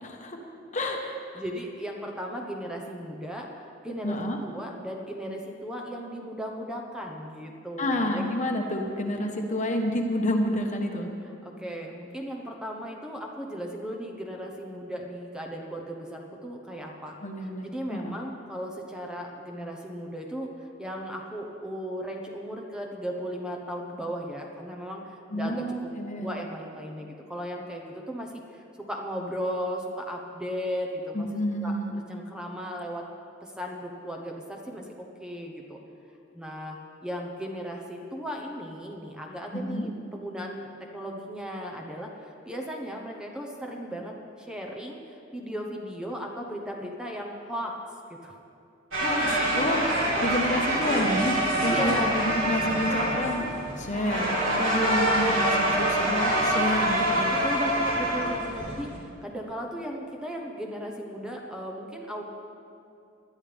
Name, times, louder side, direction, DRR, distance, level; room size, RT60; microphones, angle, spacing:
voice 1, 0.0-0.4 0.7-1.0 1.3-1.4 4.0-4.4 7.8-11.1 17.2-18.2 25.3-26.3 31.1-31.9 39.5-39.9 48.9-53.4 53.8-57.3, left 1 dB, 40° left, 2 dB, 1.2 m, -29 dB
voice 2, 1.0-8.2 11.4-17.2 17.4-25.9 26.2-31.3 31.6-33.1 33.4-35.8 36.3-47.7 48.1-48.3 51.7-52.2 57.3-62.2, equal, 5° right, 0 dB, 1.0 m, -36 dB
sound 1, 48.9-59.0, right 1 dB, 80° right, 3.5 m, -25 dB
20.0 x 12.0 x 3.5 m, 2.7 s
head